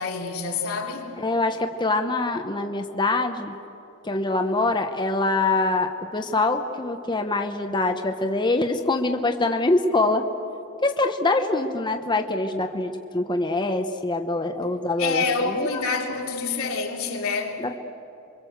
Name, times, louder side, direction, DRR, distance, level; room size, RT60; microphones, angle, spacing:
voice 1, 0.0-1.1 15.0-17.6, left 4 dB, 85° left, 3.3 m, -27 dB
voice 2, 1.2-3.6 4.0-10.3 10.8-15.8 17.6-17.8, left 2 dB, 20° left, 0.9 m, -24 dB
28.0 x 23.5 x 8.0 m
head